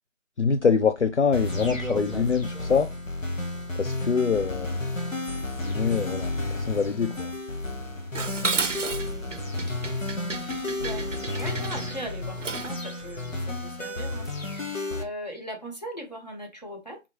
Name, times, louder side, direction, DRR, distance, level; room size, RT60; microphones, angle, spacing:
voice 1, 0.4-2.9 3.7-4.8 5.6-7.3, left 6 dB, 65° left, 0.5 m, -24 dB
sound 1, 1.3-15.0, left 2 dB, 85° left, 1.6 m, -32 dB
sound 2, 1.4-2.9 6.8-6.9 7.7-7.8 9.9-10.0 10.6-10.8 11.1-11.5 11.8-12.0 13.0-13.4 14.2-14.4, right 2 dB, ahead, 0.4 m, -40 dB
Dishes pots and pans, 8.1-12.8, right 4 dB, 70° right, 0.6 m, -32 dB
voice 2, 9.7-17.0, right 1 dB, 35° left, 1.1 m, -40 dB
4.2 x 3.6 x 3.1 m
figure-of-eight pair, 175°, 38 cm